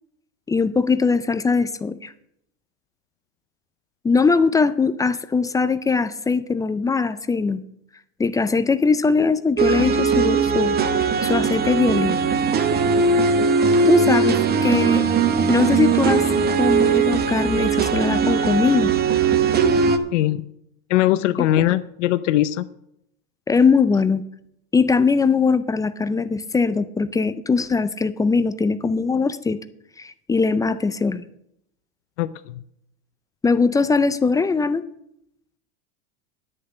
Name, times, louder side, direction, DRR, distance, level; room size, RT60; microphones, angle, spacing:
voice 1, 0.5-2.1 4.0-7.6 8.2-10.8 11.2-12.3 13.8-15.0 15.5-16.2 16.6-18.9 23.5-24.2 24.7-29.6 30.0-31.3 33.4-34.8, left 4 dB, 10° left, 13 dB, 0.4 m, -20 dB
sound 1, 9.6-20.0, right 5 dB, 25° right, 1.0 m, -19 dB
voice 2, 20.1-20.4 20.9-22.7 32.2-32.6, left 14 dB, 85° left, 14 dB, 0.7 m, -21 dB
10.0 x 6.6 x 8.6 m, 0.76 s
supercardioid pair, 125°, 35 cm